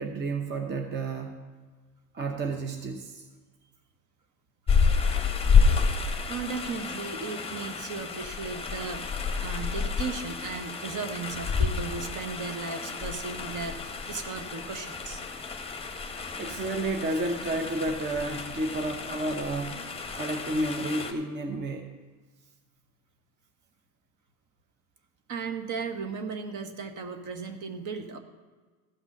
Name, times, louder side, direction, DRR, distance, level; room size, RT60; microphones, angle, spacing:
voice 1, 0.0-1.4 2.1-3.3 16.0-19.8 20.1-21.9, right 2 dB, 25° right, 4 dB, 0.9 m, -31 dB
sound 1, 4.7-21.1, left 5 dB, 15° left, 1.1 m, -29 dB
voice 2, 6.3-15.2 25.3-28.2, right 4 dB, 45° right, 7 dB, 1.3 m, -36 dB
14.5 x 6.0 x 5.4 m, 1.4 s
hypercardioid pair, 95°, 44 cm